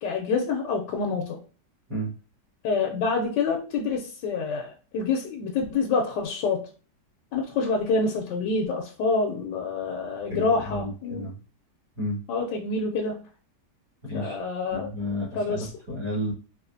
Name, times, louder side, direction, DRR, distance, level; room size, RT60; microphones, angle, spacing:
voice 1, 0.0-1.4 2.6-6.7 7.3-11.2 12.3-13.2 14.1-14.9 15.3-15.7, left 4 dB, 85° left, 1 dB, 1.3 m, -27 dB
voice 2, 10.3-11.4 12.0-12.2 14.0-14.4 14.7-16.3, equal, 20° right, -6 dB, 1.0 m, -32 dB
4.0 x 2.4 x 2.5 m, 0.36 s
omnidirectional pair, 1.8 m